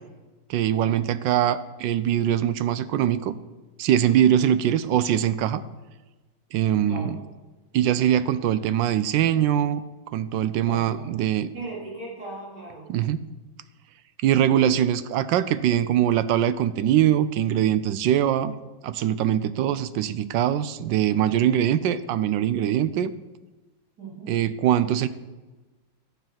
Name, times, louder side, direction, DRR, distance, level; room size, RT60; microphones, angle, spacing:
voice 1, 0.5-3.4 3.8-5.6 6.5-7.2 7.7-9.8 10.1-11.5 12.9-13.3 14.2-23.1 24.3-25.1, right 10 dB, 75° right, 14 dB, 1.2 m, -22 dB
voice 2, 10.6-11.2 11.5-12.9 19.5-19.6 24.0-24.4, right 2 dB, 55° right, -6 dB, 4.6 m, -39 dB
12.0 x 7.4 x 5.8 m, 1.2 s
omnidirectional pair, 2.1 m